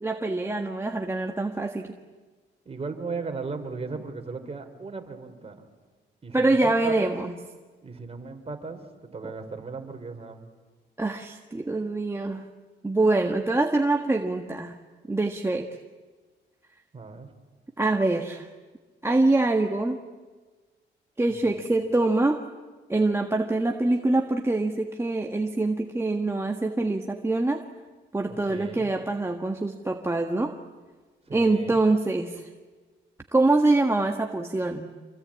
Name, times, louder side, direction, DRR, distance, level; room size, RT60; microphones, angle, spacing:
voice 1, 0.0-1.9 6.3-7.4 9.2-9.3 11.0-12.5 12.8-14.8 15.1-15.7 17.8-18.5 19.0-20.0 21.2-22.4 22.9-27.6 28.1-30.5 31.3-32.4 33.3-34.9, right 2 dB, 15° right, 3 dB, 1.5 m, -24 dB
voice 2, 2.7-5.6 6.2-7.2 7.8-10.5 16.9-17.3 21.3-21.6 28.3-28.9 31.3-31.8, right 4 dB, 30° right, 5 dB, 4.0 m, -37 dB
26.5 x 25.0 x 8.7 m, 1.4 s
cardioid pair, 90°, 20 cm